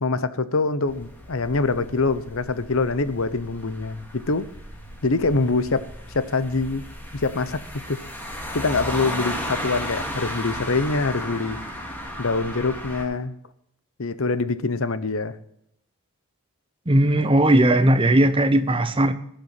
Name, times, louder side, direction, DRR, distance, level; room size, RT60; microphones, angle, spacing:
voice 1, 0.0-4.5 5.0-5.9 6.1-6.8 7.1-7.6 7.9-8.0 8.5-11.6 12.2-13.4 14.0-15.4, left 3 dB, 65° left, 14 dB, 0.9 m, -24 dB
sound 1, 0.9-13.0, equal, 10° left, 2.4 m, -35 dB
voice 2, 16.9-19.1, right 1 dB, 25° right, 10 dB, 0.9 m, -18 dB
17.5 x 6.9 x 5.9 m, 0.75 s
head